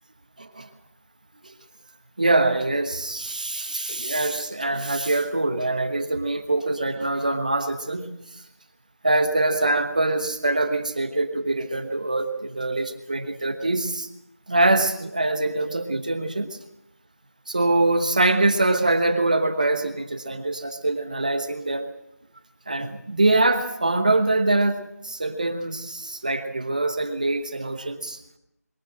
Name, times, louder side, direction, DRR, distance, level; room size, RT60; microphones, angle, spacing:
voice 1, 0.4-0.7 1.4-1.5 2.2-8.4 9.0-14.1 14.5-16.6 17.5-21.9 22.7-28.2, right 2 dB, 30° right, 8 dB, 1.2 m, -24 dB
22.5 x 16.5 x 7.7 m, 0.82 s
figure-of-eight pair, 170°, 9 cm